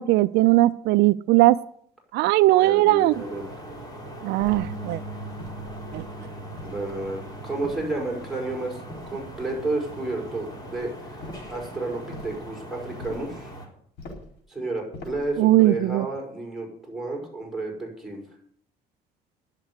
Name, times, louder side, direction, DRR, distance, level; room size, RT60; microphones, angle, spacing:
voice 1, 0.0-1.6 2.1-3.1 4.2-5.0 5.9-6.0 15.4-16.1, right 17 dB, 80° right, 15 dB, 0.4 m, -19 dB
voice 2, 2.6-3.5 6.2-6.3 6.6-8.8 9.1-11.2 11.5-13.5 14.5-18.2, right 2 dB, ahead, -2 dB, 5.8 m, -31 dB
sound 1, 3.1-13.7, right 1 dB, 25° left, 3.9 m, -41 dB
sound 2, 4.4-4.8 5.4-6.0 6.6-7.1 7.6-8.3 8.9-9.6 11.2-11.6 12.1-12.4 13.0-13.4 14.0-14.4 14.9-15.4, left 2 dB, 75° left, 4.3 m, -42 dB
sound 3, 4.5-10.8, right 2 dB, 40° left, 5.5 m, -42 dB
10.5 x 7.4 x 9.6 m, 0.63 s
cardioid pair, 110°, 17 cm